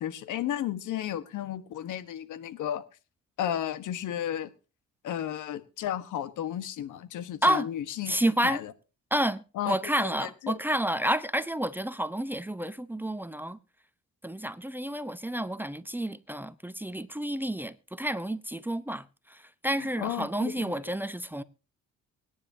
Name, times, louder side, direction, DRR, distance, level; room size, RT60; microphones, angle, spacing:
voice 1, 0.0-2.8 3.4-4.5 5.0-8.1 8.4-8.7 9.5-9.8 10.0-10.6 19.8-20.7, left 11 dB, 80° left, 1.3 m, -33 dB
voice 2, 8.1-8.6 9.1-13.6 14.2-21.4, right 1 dB, 5° right, 0.8 m, -30 dB
24.0 x 10.0 x 2.8 m
cardioid pair, 90°, 30 cm